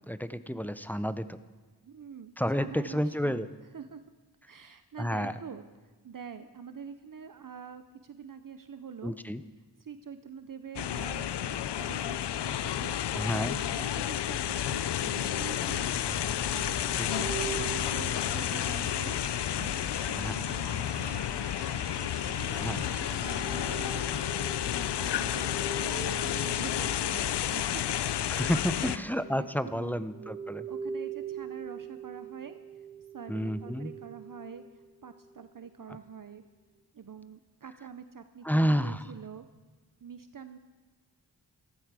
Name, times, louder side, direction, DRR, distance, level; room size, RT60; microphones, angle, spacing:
voice 1, 0.1-1.4 2.4-3.5 5.0-5.3 9.0-9.4 13.1-13.6 17.0-17.3 20.1-20.4 22.6-22.8 28.3-30.7 33.3-33.9 38.4-39.0, equal, 5° left, 13 dB, 0.5 m, -30 dB
voice 2, 1.8-3.4 3.7-4.0 4.5-9.1 9.8-13.0 13.7-16.8 17.2-19.2 19.6-21.2 22.2-27.8 28.7-30.0 30.7-32.6 33.1-34.6 35.0-36.4 36.9-39.5 40.0-40.6, right 7 dB, 50° right, 10 dB, 0.6 m, -46 dB
sound 1, 10.8-29.0, left 11 dB, 70° left, 0.5 m, -31 dB
sound 2, 15.2-24.3, right 3 dB, 90° right, 2.1 m, -46 dB
sound 3, 17.0-18.9 23.3-27.7 29.1-35.3, right 5 dB, 30° right, 1.0 m, -42 dB
14.0 x 13.5 x 4.8 m, 1.3 s
wide cardioid pair, 75°, 42 cm